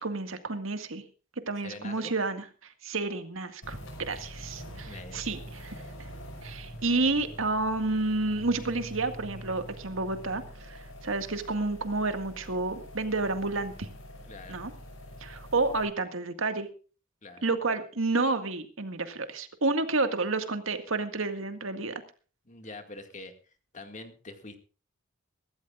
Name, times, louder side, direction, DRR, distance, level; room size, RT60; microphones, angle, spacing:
voice 1, 0.0-1.0 1.5-5.7 6.4-13.9 14.5-14.7 15.2-16.7 17.4-21.9, right 3 dB, 75° right, 8 dB, 1.9 m, -30 dB
voice 2, 1.6-2.1 4.8-5.2 14.3-14.6 17.2-17.5 22.5-23.3 23.7-24.6, left 2 dB, 40° left, 6 dB, 2.1 m, -44 dB
sound 1, 3.6-15.8, equal, 75° left, 5.8 m, -45 dB
24.0 x 13.5 x 2.5 m, 0.38 s
head